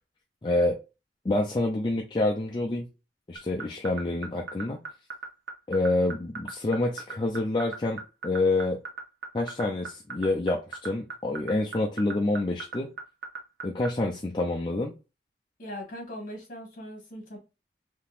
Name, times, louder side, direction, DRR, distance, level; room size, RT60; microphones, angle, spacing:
voice 1, 0.4-0.8 1.2-2.9 3.3-4.8 5.7-8.0 8.2-8.8 9.3-12.9 13.6-14.9, left 2 dB, 25° left, 0.4 m, -27 dB
sound 1, 3.4-13.9, right 5 dB, 80° right, 0.9 m, -36 dB
voice 2, 15.6-17.4, equal, 50° left, 1.4 m, -40 dB
3.6 x 2.8 x 2.4 m
head